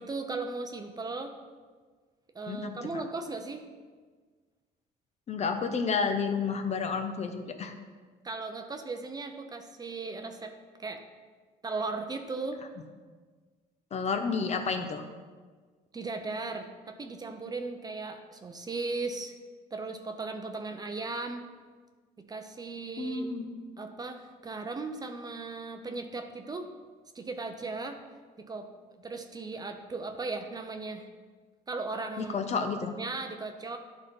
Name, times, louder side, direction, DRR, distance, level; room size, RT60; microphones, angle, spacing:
voice 1, 0.0-1.3 2.3-3.6 8.2-10.5 10.8-11.0 11.6-12.6 15.9-19.3 19.7-21.4 22.3-23.3 23.8-26.7 27.1-28.0 28.4-28.7 29.0-31.0 31.7-32.7 33.0-33.8, right 3 dB, 25° right, 6 dB, 0.7 m, -37 dB
voice 2, 5.3-7.7 13.9-15.0 23.0-23.5 32.2-32.9, left 5 dB, 40° left, 6 dB, 0.8 m, -30 dB
11.5 x 4.0 x 5.4 m, 1.5 s
cardioid pair, 110°, 17 cm